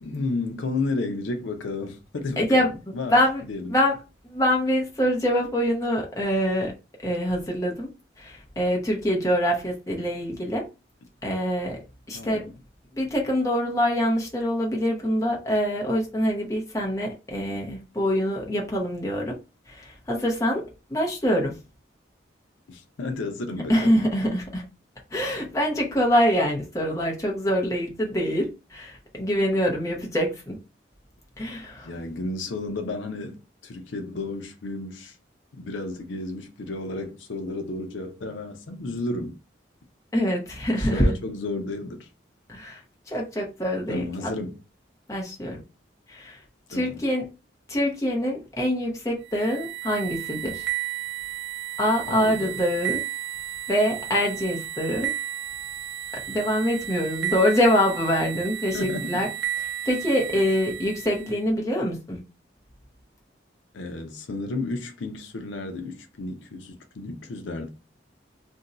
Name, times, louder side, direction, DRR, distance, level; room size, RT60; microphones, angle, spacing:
voice 1, 0.0-3.2 3.5-3.8 12.1-12.6 22.7-24.1 31.8-35.2 35.5-39.4 40.8-42.1 43.9-44.6 46.7-47.0 52.1-52.6 58.7-59.2 63.7-67.7, left 2 dB, 85° left, 0.6 m, -32 dB
voice 2, 2.4-3.4 3.7-4.0 4.2-6.7 7.0-7.9 8.2-10.6 11.2-11.8 12.1-12.5 13.0-19.3 19.7-21.6 23.7-24.6 25.1-30.6 31.4-31.9 40.1-41.1 42.5-42.8 43.1-44.3 45.1-45.6 46.1-46.4 46.7-47.2 47.7-50.7 51.8-53.0 53.7-55.1 56.3-59.3 59.8-62.2, equal, 15° left, 0.7 m, -25 dB
sound 1, 49.3-61.4, right 12 dB, 75° right, 0.5 m, -33 dB
2.6 x 2.2 x 3.9 m
head